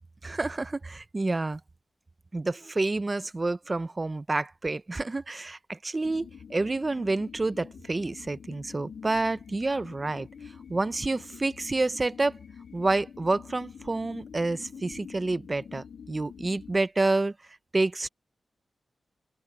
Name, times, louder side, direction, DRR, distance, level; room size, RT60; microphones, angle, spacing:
voice 1, 0.2-1.6 2.3-10.3 10.7-12.4 12.7-17.3 17.7-18.1, right 2 dB, 25° right, 0.6 m, -28 dB
sound 1, 6.0-16.8, left 7 dB, 70° left, 0.5 m, -47 dB
open air
wide cardioid pair, 135°, 0 cm